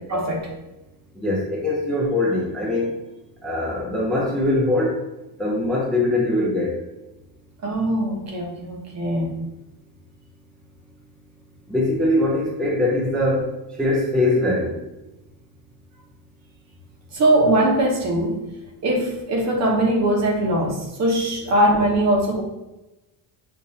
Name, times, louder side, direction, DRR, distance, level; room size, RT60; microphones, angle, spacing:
voice 1, 0.1-0.5 7.6-9.4 17.1-18.4 18.8-22.4, right 1 dB, 35° right, 1 dB, 0.9 m, -21 dB
voice 2, 1.2-2.9 3.4-5.0 5.4-6.8 11.7-13.5 13.8-14.8, left 1 dB, ahead, -4 dB, 0.5 m, -22 dB
6.6 x 2.6 x 2.7 m, 1.0 s
cardioid pair, 150°, 45 cm